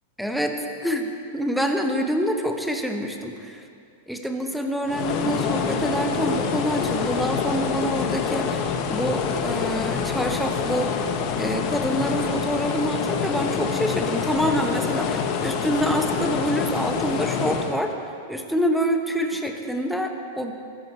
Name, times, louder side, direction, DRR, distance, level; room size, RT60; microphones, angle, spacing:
voice 1, 0.2-3.6 4.1-10.9 11.4-17.9 18.3-20.5, equal, ahead, 4 dB, 1.3 m, -26 dB
sound 1, 4.8-17.8, left 6 dB, 45° left, 1.3 m, -26 dB
21.0 x 10.5 x 3.5 m, 2.4 s
figure-of-eight pair, 95°, 0 cm